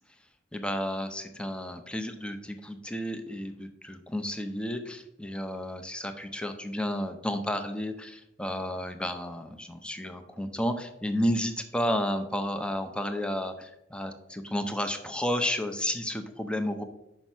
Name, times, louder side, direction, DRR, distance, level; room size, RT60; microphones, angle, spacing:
voice 1, 0.5-16.8, equal, 5° left, 7 dB, 0.6 m, -32 dB
5.9 x 5.4 x 5.9 m, 0.86 s
head